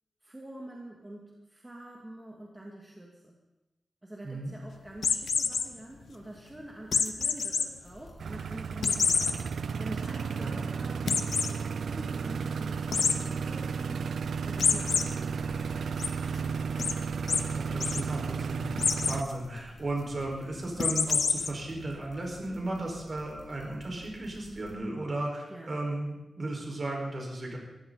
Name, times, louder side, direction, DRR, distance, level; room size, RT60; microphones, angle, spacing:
voice 1, 0.2-3.3 4.0-9.3 9.8-14.0 14.4-16.3 25.5-25.8, right 1 dB, 15° right, -2 dB, 2.4 m, -46 dB
sound 1, 5.0-5.7 6.9-7.6 8.1-8.2 8.8-9.3 9.8-9.9 10.2-10.3 11.1-11.5 12.9-13.1 14.6-15.0 15.5-16.1 16.8-16.9 17.3-17.4 17.7-18.0 18.8-19.2 20.8-21.5, left 5 dB, 75° left, 1.1 m, -26 dB
sound 2, 7.8-24.7, equal, 20° left, 6.7 m, -52 dB
sound 3, 8.2-19.2, right 6 dB, 80° right, 0.6 m, -33 dB
voice 2, 17.2-27.6, right 2 dB, 40° right, 0 dB, 5.3 m, -35 dB
21.5 x 15.5 x 4.2 m, 1.1 s
wide cardioid pair, 100°, 0 cm